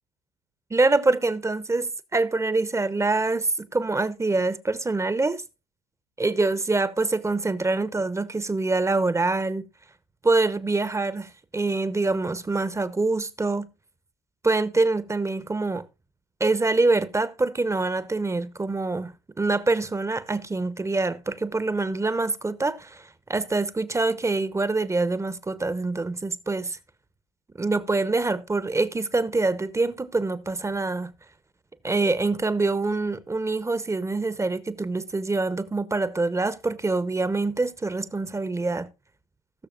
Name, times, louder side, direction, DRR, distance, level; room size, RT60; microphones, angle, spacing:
voice 1, 0.7-5.4 6.2-9.6 10.2-13.7 14.4-15.8 16.4-26.8 27.6-31.1 31.8-38.9, right 3 dB, 15° right, 0.9 m, -25 dB
19.5 x 6.7 x 2.5 m
hypercardioid pair, 65°, 19 cm